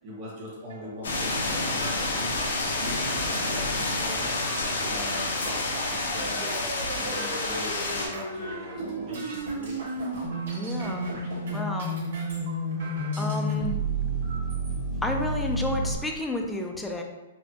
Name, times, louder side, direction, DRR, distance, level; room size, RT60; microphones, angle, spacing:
voice 1, 0.0-5.6 5.9-9.8, equal, 30° right, -4 dB, 1.2 m, -41 dB
sound 1, 0.7-13.5 14.2-14.8 15.3-15.4 15.7-16.4, right 3 dB, 70° right, 1.2 m, -41 dB
sound 2, 1.0-8.1, left 2 dB, 90° left, 0.8 m, -29 dB
sound 3, 4.8-15.9, right 1 dB, 15° right, 0.9 m, -32 dB
voice 2, 10.5-11.0 11.5-11.9 13.2-13.7 15.0-17.0, left 1 dB, 5° left, 1 dB, 0.4 m, -31 dB
4.2 x 2.2 x 2.8 m, 1.1 s
hypercardioid pair, 150°, 0 cm